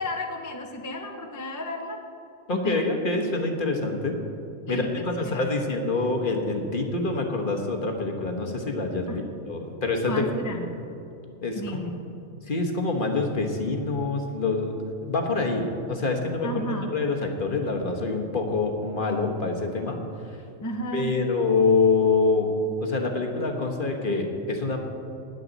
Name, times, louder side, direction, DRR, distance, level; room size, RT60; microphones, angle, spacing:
voice 1, 0.0-2.0 2.5-3.0 3.6-4.1 4.7-5.5 9.1-9.2 10.1-10.7 11.6-12.0 16.4-16.9 20.6-21.2, left 1 dB, 20° left, 2 dB, 0.6 m, -33 dB
voice 2, 2.5-4.1 4.7-10.2 10.5-10.7 11.4-11.8 12.5-14.7 15.1-20.0 20.9-22.5 22.8-24.8, left 3 dB, 40° left, 2 dB, 1.3 m, -26 dB
19.0 x 7.9 x 4.0 m, 2.7 s
omnidirectional pair, 1.4 m